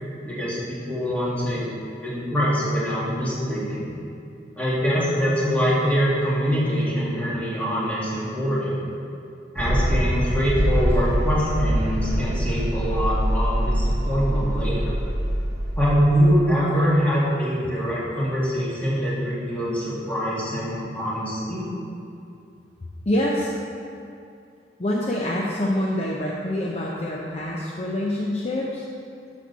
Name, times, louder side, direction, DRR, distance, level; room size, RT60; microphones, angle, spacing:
voice 1, 0.2-1.7 2.0-3.9 4.6-8.8 9.5-15.0 15.8-21.7, equal, 10° left, -8 dB, 2.2 m, -24 dB
sound 1, 9.6-16.4, right 1 dB, 65° right, 1.0 m, -24 dB
voice 2, 23.1-23.5 24.8-28.8, left 1 dB, 35° left, -3 dB, 0.7 m, -26 dB
12.5 x 6.2 x 4.1 m, 2.6 s
head